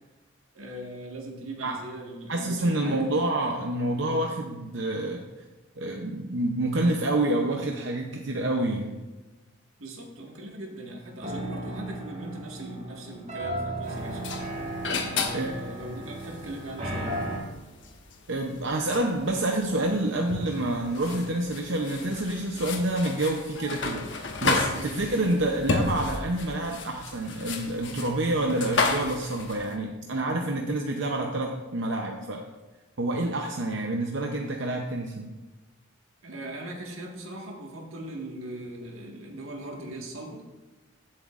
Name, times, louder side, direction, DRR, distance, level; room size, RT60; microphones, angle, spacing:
voice 1, 0.5-3.0 9.8-14.3 15.0-17.3 24.7-24.9 36.2-40.4, right 1 dB, 85° right, 1 dB, 1.7 m, -40 dB
voice 2, 2.3-5.2 5.8-8.9 15.3-15.6 18.3-32.4 33.0-35.3, right 1 dB, 65° right, 2 dB, 0.7 m, -28 dB
sound 1, 11.2-17.4, right 1 dB, 35° right, 2.1 m, -35 dB
sound 2, 13.9-29.7, left 3 dB, 60° left, 1.1 m, -33 dB
15.0 x 7.6 x 2.5 m, 1.2 s
head